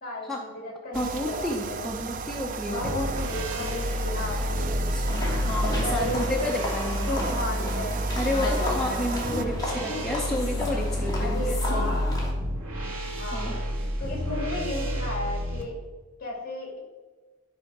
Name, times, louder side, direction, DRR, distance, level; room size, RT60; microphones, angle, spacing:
voice 1, 0.0-1.8 2.7-5.0 5.8-6.5 7.1-8.0 8.3-8.7 9.2-9.5 11.2-12.2 13.2-13.5 13.8-15.8 16.2-16.8, left 1 dB, 45° left, 0 dB, 2.5 m, -34 dB
voice 2, 0.9-2.9 4.4-7.1 8.2-12.0 13.3-13.6, left 1 dB, ahead, -2 dB, 0.7 m, -31 dB
sound 1, 0.9-9.4, right 4 dB, 40° right, 0.4 m, -35 dB
sound 2, 2.8-15.6, equal, 80° right, 1.8 m, -30 dB
sound 3, 5.0-12.3, left 1 dB, 20° left, 1.8 m, -33 dB
11.0 x 4.5 x 6.0 m, 1.3 s
head